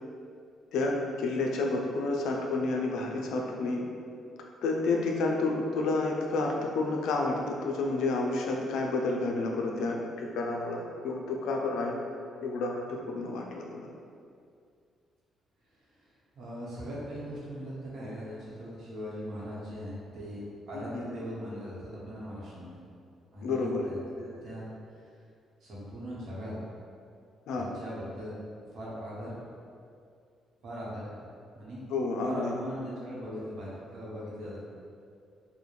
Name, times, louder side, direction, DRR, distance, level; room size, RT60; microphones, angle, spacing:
voice 1, 0.7-3.8 4.6-11.9 12.4-13.9 20.7-21.0 23.4-23.9 27.5-27.7 31.9-32.5, left 3 dB, 85° left, 0 dB, 0.3 m, -30 dB
voice 2, 15.7-16.1 16.3-22.8 23.3-24.7 24.9-25.0 25.6-26.6 27.5-28.4 28.7-29.4 30.6-31.2 31.5-31.8 32.2-34.6, equal, 65° right, -7 dB, 0.8 m, -40 dB
2.4 x 2.1 x 3.1 m, 2.3 s
cardioid pair, 90°, 0 cm